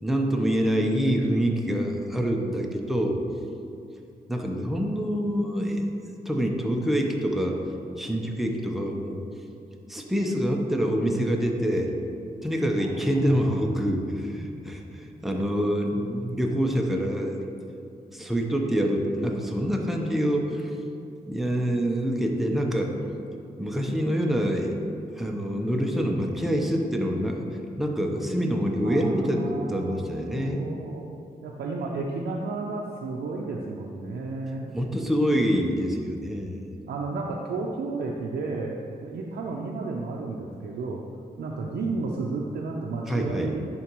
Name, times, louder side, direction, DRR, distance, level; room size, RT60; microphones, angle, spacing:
voice 1, 0.0-3.2 4.3-6.0 6.2-7.6 8.0-9.2 9.9-11.9 12.4-17.4 18.1-20.7 21.3-22.9 23.6-24.8 25.2-27.5 27.8-30.6 34.7-36.7 43.1-43.5, equal, ahead, 1 dB, 0.9 m, -26 dB
voice 2, 12.8-13.6 15.9-16.1 28.8-30.0 30.4-31.1 31.4-34.7 36.9-41.0 41.4-43.6, right 3 dB, 75° right, -2 dB, 0.6 m, -32 dB
10.5 x 3.9 x 3.1 m, 2.6 s
cardioid pair, 50°, 17 cm